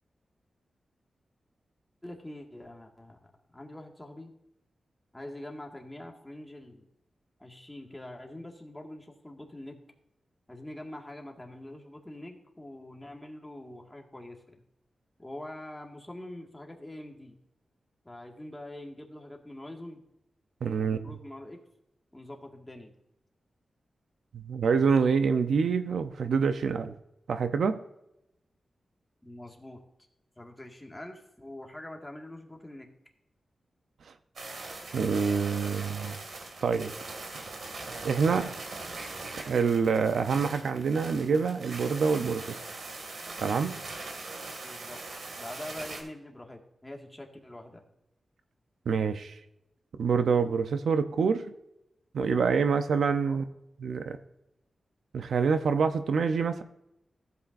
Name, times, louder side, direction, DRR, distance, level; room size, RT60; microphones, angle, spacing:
voice 1, 2.0-4.3 5.1-6.8 7.4-9.8 10.5-14.4 15.2-17.4 18.1-20.0 20.8-21.6 22.1-22.9 29.2-29.8 30.4-32.9 44.6-45.0 45.4-47.8 53.3-53.4, left 1 dB, 10° left, 1 dB, 1.9 m, -44 dB
voice 2, 20.6-21.0 24.3-26.9 27.3-27.8 34.9-36.2 36.6-36.9 38.0-38.6 39.4-42.6 43.4-43.8 48.9-49.4 50.0-51.5 52.1-53.4 53.8-54.2 55.1-56.6, right 5 dB, 85° right, 9 dB, 0.7 m, -26 dB
sound 1, 34.4-46.0, right 3 dB, 70° right, 2.2 m, -41 dB
15.5 x 8.3 x 2.6 m, 0.83 s
wide cardioid pair, 85°, 0 cm